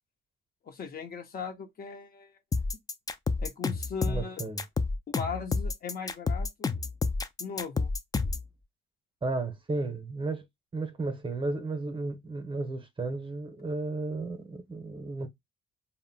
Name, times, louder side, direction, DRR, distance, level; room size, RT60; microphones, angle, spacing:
voice 1, 0.6-2.3 3.4-4.4 5.2-6.7 7.4-7.9, left 6 dB, 50° left, 0.7 m, -38 dB
sound 1, 2.5-8.5, left 4 dB, 20° left, 0.3 m, -29 dB
voice 2, 4.1-4.6 9.2-10.5 10.7-15.3, right 3 dB, 25° right, 0.7 m, -33 dB
2.1 x 2.0 x 3.7 m
cardioid pair, 90°, 20 cm